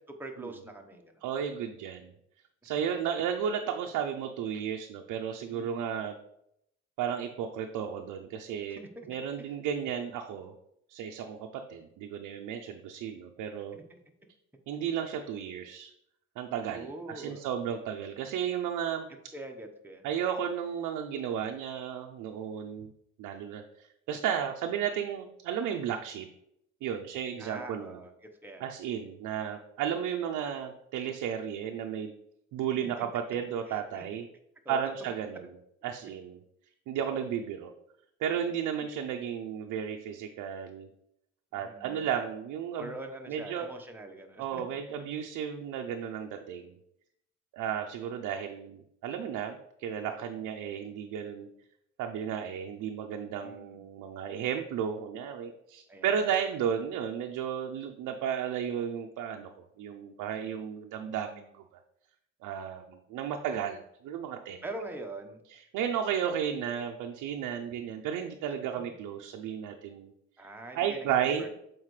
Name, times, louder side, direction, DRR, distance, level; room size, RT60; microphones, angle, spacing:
voice 1, 0.2-1.2 5.5-5.9 8.7-9.1 13.7-14.0 16.7-17.5 19.3-20.1 27.4-28.1 28.4-28.7 32.8-32.9 33.7-34.0 34.6-34.9 41.5-42.1 42.8-44.6 53.4-53.8 55.9-56.3 64.6-65.4 68.8-68.9 70.4-71.5, right 2 dB, 5° right, 2 dB, 1.0 m, -43 dB
voice 2, 1.2-2.1 2.6-6.2 7.0-8.8 9.1-10.5 10.9-13.8 14.7-15.9 16.4-19.1 20.0-22.9 23.2-26.3 26.8-28.0 28.6-32.1 32.5-34.3 34.7-35.5 35.8-36.4 36.9-37.7 38.2-40.9 41.5-42.9 43.3-43.7 44.4-46.8 47.5-51.5 52.0-61.5 62.4-64.6 65.5-70.1 70.4-70.5 70.7-71.5, right 8 dB, 90° right, 3 dB, 0.6 m, -33 dB
7.4 x 4.5 x 3.2 m, 0.77 s
cardioid pair, 90°, 30 cm